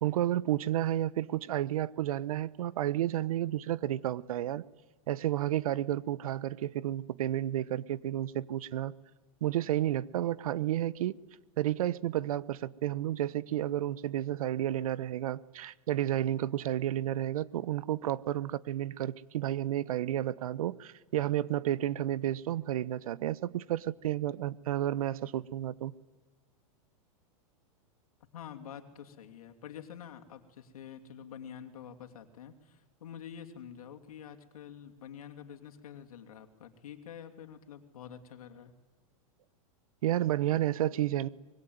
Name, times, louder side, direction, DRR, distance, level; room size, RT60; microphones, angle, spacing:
voice 1, 0.0-4.6 5.1-8.9 9.4-11.1 11.6-25.9 40.0-41.3, right 12 dB, 80° right, 1.0 m, -31 dB
voice 2, 28.3-38.7, left 8 dB, 90° left, 2.9 m, -47 dB
25.0 x 21.5 x 9.5 m
supercardioid pair, 135°, 18 cm